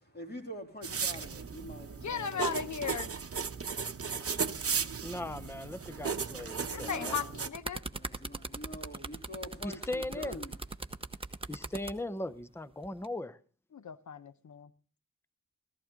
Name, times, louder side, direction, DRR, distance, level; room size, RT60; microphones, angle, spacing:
voice 1, 0.0-3.1 6.8-7.4 7.8-10.6, equal, 30° left, 2.9 m, -45 dB
sound 1, 0.8-7.5, right 6 dB, 45° right, 0.9 m, -35 dB
voice 2, 2.0-3.1 6.7-7.8 13.7-14.7, left 7 dB, 60° left, 0.8 m, -36 dB
voice 3, 5.0-7.2 9.6-10.4 11.5-13.4, left 1 dB, 10° left, 0.7 m, -38 dB
sound 2, 7.3-11.9 12.8-13.0, right 2 dB, 15° right, 0.9 m, -40 dB
14.5 x 14.5 x 3.7 m
wide cardioid pair, 105°, 33 cm